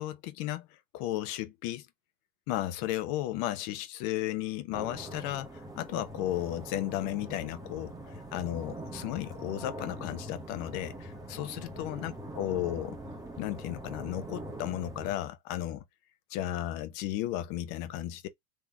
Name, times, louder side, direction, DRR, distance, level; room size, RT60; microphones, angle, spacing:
voice 1, 0.0-1.9 2.5-13.0 13.4-15.8 16.3-18.3, left 13 dB, 45° left, 1.0 m, -34 dB
sound 1, 4.7-15.2, right 1 dB, 5° right, 1.1 m, -43 dB
3.9 x 3.3 x 3.6 m
hypercardioid pair, 110°, 49 cm